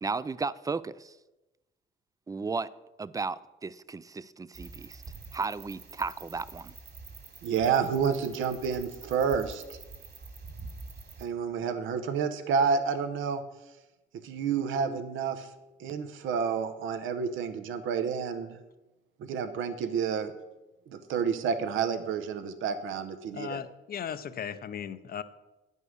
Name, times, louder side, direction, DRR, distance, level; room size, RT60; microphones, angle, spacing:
voice 1, 0.0-1.2 2.3-2.7 3.0-5.0 5.3-6.7, right 4 dB, 20° right, 0.3 m, -34 dB
sound 1, 4.5-11.2, right 4 dB, 50° right, 2.3 m, -46 dB
voice 2, 7.4-9.8 11.2-13.4 14.2-15.5 15.8-18.6 19.2-20.3 20.9-23.6, right 6 dB, 85° right, 0.9 m, -29 dB
voice 3, 23.3-25.2, left 8 dB, 50° left, 0.6 m, -37 dB
9.5 x 5.5 x 6.3 m
cardioid pair, 90°, 20 cm